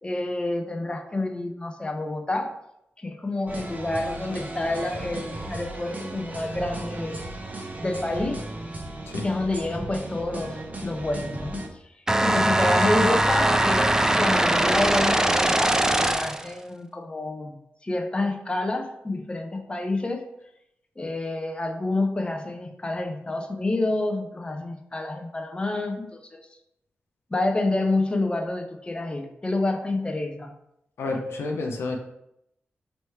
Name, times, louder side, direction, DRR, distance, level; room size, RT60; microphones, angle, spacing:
voice 1, 0.0-2.5 3.0-7.2 7.8-8.4 9.2-11.6 12.2-17.6 17.8-20.2 21.0-26.5 27.3-30.6, left 2 dB, 25° left, 4 dB, 0.6 m, -28 dB
sound 1, 3.5-11.7, right 2 dB, 40° right, 0.8 m, -36 dB
sound 2, 12.1-16.5, right 1 dB, 15° right, 0.3 m, -21 dB
voice 2, 31.0-32.0, left 3 dB, 85° left, 2 dB, 0.6 m, -29 dB
3.2 x 3.1 x 4.4 m, 0.80 s
cardioid pair, 55°, 4 cm